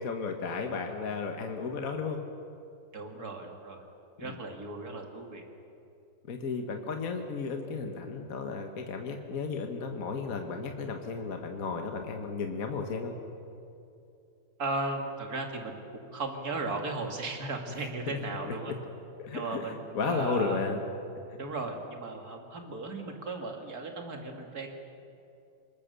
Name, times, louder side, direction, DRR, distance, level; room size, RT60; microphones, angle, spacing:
voice 1, 0.0-2.2 4.2-4.4 6.3-13.1 18.4-18.8 19.2-19.6 19.9-20.8 21.3-21.4, left 4 dB, 50° left, 4 dB, 1.7 m, -34 dB
voice 2, 2.9-3.8 4.2-5.4 14.6-18.7 19.3-20.6 21.4-24.7, right 3 dB, 50° right, 3 dB, 2.7 m, -36 dB
26.0 x 21.5 x 6.9 m, 2.7 s
omnidirectional pair, 2.1 m